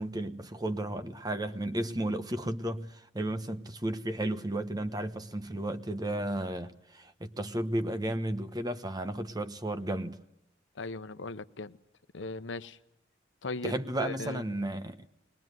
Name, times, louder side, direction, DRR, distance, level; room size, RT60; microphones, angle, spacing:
voice 1, 0.0-10.2 13.6-15.1, right 1 dB, 20° right, 1.1 m, -33 dB
voice 2, 10.7-11.8 12.1-12.8 13.4-14.4, left 2 dB, 80° left, 0.9 m, -38 dB
22.0 x 21.5 x 9.2 m
head